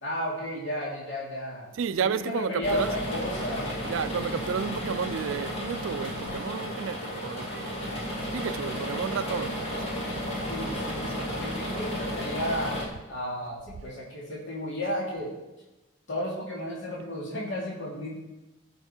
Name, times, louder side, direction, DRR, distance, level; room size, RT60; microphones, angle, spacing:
voice 1, 0.0-1.7 2.0-3.7 10.5-12.8 13.1-15.3 16.1-18.2, equal, 65° left, 2.5 m, -33 dB
voice 2, 1.7-2.9 3.8-7.8 8.3-9.8 10.9-11.2, right 6 dB, 75° right, 0.4 m, -32 dB
sound 1, 2.6-12.9, equal, 30° left, 2.2 m, -33 dB
15.0 x 5.7 x 4.4 m
head